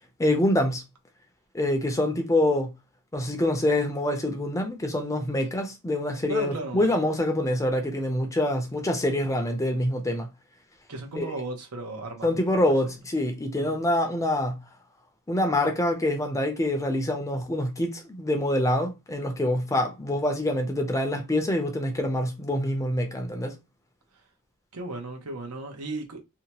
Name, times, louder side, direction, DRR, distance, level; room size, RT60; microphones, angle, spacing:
voice 1, 0.2-0.8 1.5-2.7 3.1-10.3 11.2-11.3 12.2-14.6 15.3-23.6, left 1 dB, 15° left, 0.5 m, -25 dB
voice 2, 6.3-6.9 10.9-12.7 13.5-13.8 24.7-26.2, right 2 dB, 85° right, 0.8 m, -35 dB
2.7 x 2.2 x 2.8 m
head